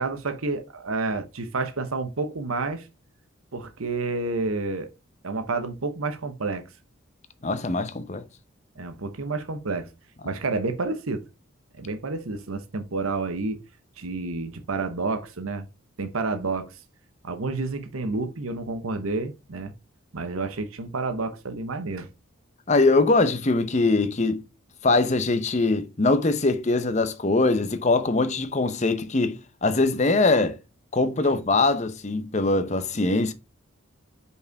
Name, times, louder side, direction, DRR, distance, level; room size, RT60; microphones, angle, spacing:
voice 1, 0.0-2.9 3.5-4.9 5.2-6.7 8.8-9.9 10.2-11.3 11.8-13.6 14.0-15.7 16.0-16.8 17.2-19.7 20.1-22.1, right 3 dB, 85° right, 0.9 m, -29 dB
voice 2, 7.4-8.2 22.7-24.4 24.8-30.6 30.9-33.3, left 3 dB, 35° left, 0.7 m, -22 dB
5.5 x 4.8 x 4.6 m
head